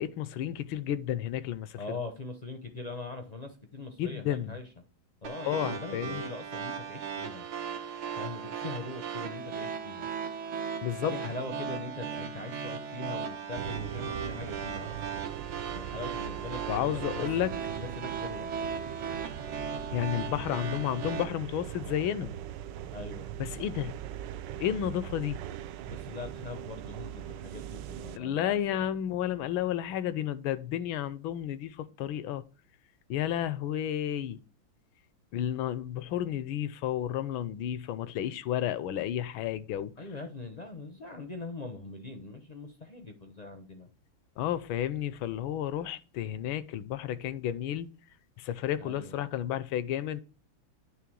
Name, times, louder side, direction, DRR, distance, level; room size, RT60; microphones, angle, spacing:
voice 1, 0.0-1.8 4.0-4.6 5.4-6.3 10.8-11.1 16.7-17.5 19.9-22.3 23.4-23.9 24.6-25.4 28.2-32.4 33.1-34.4 35.3-39.9 44.4-47.9 48.4-50.2, left 11 dB, 80° left, 1.4 m, -32 dB
voice 2, 1.8-4.6 5.2-7.4 8.1-10.1 11.1-15.2 15.7-17.3 17.8-18.5 22.9-23.3 25.9-28.6 40.0-43.9 48.8-49.2, left 3 dB, 50° left, 0.4 m, -41 dB
sound 1, 5.2-21.2, right 6 dB, 90° right, 2.0 m, -37 dB
sound 2, 13.6-28.2, right 10 dB, 70° right, 1.2 m, -41 dB
9.6 x 3.4 x 6.2 m
omnidirectional pair, 2.2 m